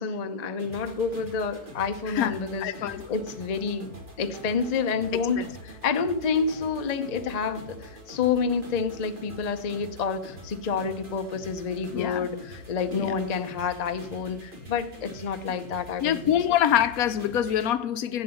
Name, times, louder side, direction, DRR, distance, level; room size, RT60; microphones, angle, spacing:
voice 1, 0.0-3.9 4.2-16.4, left 5 dB, 45° left, 0.5 m, -29 dB
sound 1, 0.6-17.7, equal, 35° right, 1.9 m, -45 dB
voice 2, 2.1-3.1 5.1-5.5 11.9-12.3 12.9-13.1 16.0-18.2, left 10 dB, 75° left, 1.0 m, -25 dB
7.8 x 7.6 x 7.0 m
omnidirectional pair, 1.6 m